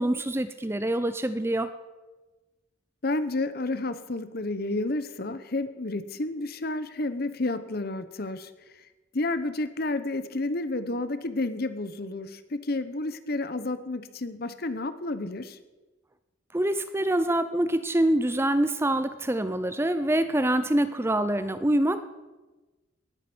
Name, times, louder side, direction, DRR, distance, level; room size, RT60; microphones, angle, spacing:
voice 1, 0.0-1.7 16.5-22.0, right 1 dB, 10° right, 11 dB, 0.5 m, -25 dB
voice 2, 3.0-8.8 9.1-15.6, left 2 dB, 50° left, 12 dB, 0.9 m, -31 dB
18.5 x 8.8 x 6.1 m, 1.2 s
head